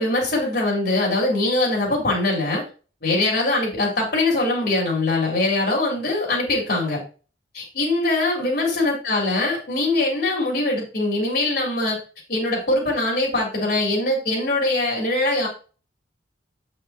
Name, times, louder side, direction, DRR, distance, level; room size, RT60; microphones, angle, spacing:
voice 1, 0.0-2.6 3.0-7.0 7.5-12.0 12.3-15.5, left 2 dB, 55° left, -2 dB, 4.1 m, -22 dB
8.5 x 6.7 x 3.1 m, 0.37 s
head